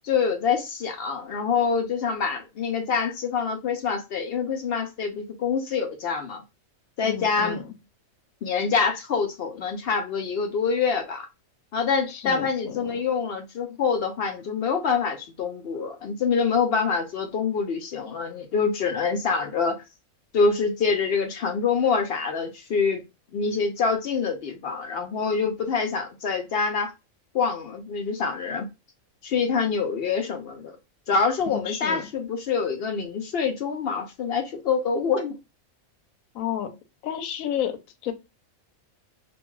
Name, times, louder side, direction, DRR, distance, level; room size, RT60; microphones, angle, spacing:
voice 1, 0.1-6.4 7.0-7.6 8.4-11.3 11.7-19.8 20.3-23.0 23.3-26.9 27.3-28.7 29.2-30.8 31.1-35.4, left 5 dB, 65° left, 0.6 m, -25 dB
voice 2, 7.0-7.7 12.1-12.9 31.5-32.1 36.3-36.7 37.0-38.1, left 10 dB, 80° left, 1.0 m, -31 dB
2.5 x 2.3 x 2.9 m
omnidirectional pair, 1.4 m